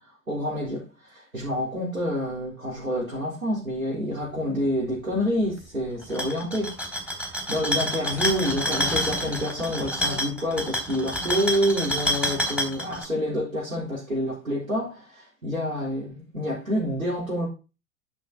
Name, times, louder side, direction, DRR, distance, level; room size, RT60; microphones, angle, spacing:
voice 1, 0.3-17.5, equal, 85° right, 4.1 m, -28 dB
sound 1, 6.0-13.0, left 1 dB, ahead, 3.2 m, -28 dB
10.5 x 6.2 x 4.1 m
figure-of-eight pair, 90°, 41 cm